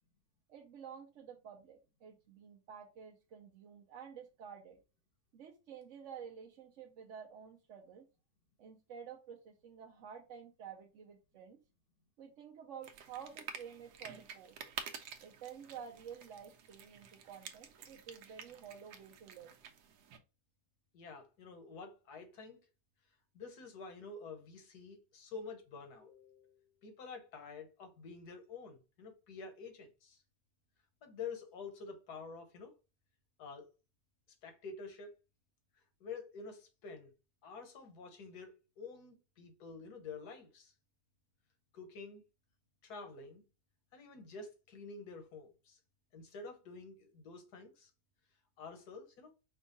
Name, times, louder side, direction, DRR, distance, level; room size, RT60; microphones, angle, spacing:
voice 1, 0.5-4.8 5.3-8.1 8.6-11.6 12.2-14.6 15.2-19.5, right 7 dB, 60° right, 0.9 m, -51 dB
sound 1, 12.8-20.2, right 7 dB, 90° right, 1.3 m, -50 dB
voice 2, 20.9-22.6 23.3-30.2 31.0-32.7 33.4-33.7 34.4-35.1 36.0-37.1 37.4-40.7 41.7-42.2 42.8-43.4 43.9-45.8 46.1-47.9 48.6-49.3, left 4 dB, 80° left, 1.6 m, -49 dB
5.4 x 2.4 x 3.9 m
omnidirectional pair, 1.7 m